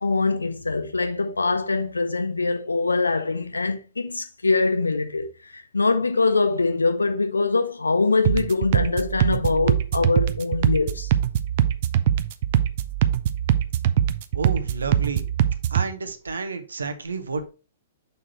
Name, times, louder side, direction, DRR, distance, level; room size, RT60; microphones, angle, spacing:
voice 1, 0.0-5.2 5.5-11.1, left 3 dB, 75° left, 0.8 m, -23 dB
sound 1, 8.2-15.9, right 10 dB, 45° right, 0.5 m, -22 dB
voice 2, 14.3-15.3 15.7-17.4, right 4 dB, 70° right, 0.9 m, -30 dB
6.7 x 3.7 x 4.2 m
figure-of-eight pair, 110°, 0 cm